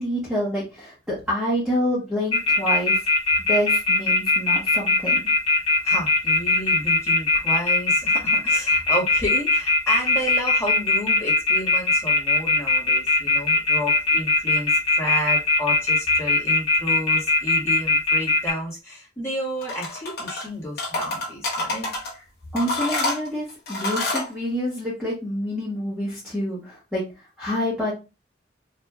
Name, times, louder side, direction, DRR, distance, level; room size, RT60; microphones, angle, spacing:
voice 1, 0.0-3.0 3.5-5.2 22.5-27.0 27.4-27.9, equal, 5° right, -7 dB, 1.1 m, -27 dB
sound 1, 2.3-18.5, left 3 dB, 30° left, 1.9 m, -19 dB
voice 2, 5.8-22.3, equal, 15° left, -5 dB, 1.7 m, -31 dB
sound 2, 19.6-20.5 20.8-22.1 22.6-24.3, left 2 dB, 55° left, 1.3 m, -27 dB
4.3 x 2.6 x 2.4 m, 0.28 s
head